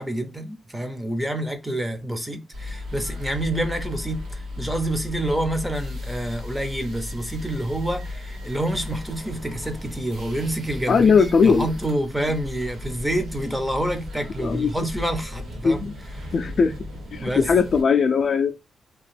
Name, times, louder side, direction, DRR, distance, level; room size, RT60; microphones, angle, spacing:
voice 1, 0.0-15.8 17.2-17.5, right 1 dB, 10° right, 0.6 m, -28 dB
sound 1, 2.5-17.8, left 2 dB, 75° right, 1.8 m, -35 dB
voice 2, 10.9-11.7 14.4-14.7 15.6-15.9 16.3-16.7 17.1-18.5, left 5 dB, 50° left, 0.4 m, -19 dB
2.9 x 2.5 x 3.3 m
cardioid pair, 115°, 0 cm